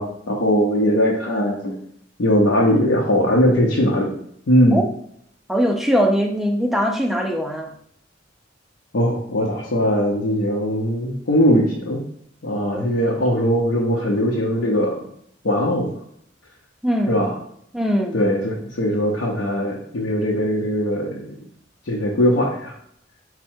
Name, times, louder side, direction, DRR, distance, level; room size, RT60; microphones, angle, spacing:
voice 1, 0.0-1.8 2.2-4.1 4.5-4.8 8.9-12.0 12.4-15.0 15.4-16.0 17.1-17.3 18.1-21.3 21.8-22.8, equal, 70° left, -3 dB, 0.7 m, -20 dB
voice 2, 5.5-7.7 12.7-12.9 16.8-17.2 17.7-18.2, equal, ahead, 3 dB, 0.4 m, -21 dB
4.6 x 2.1 x 4.4 m, 0.69 s
head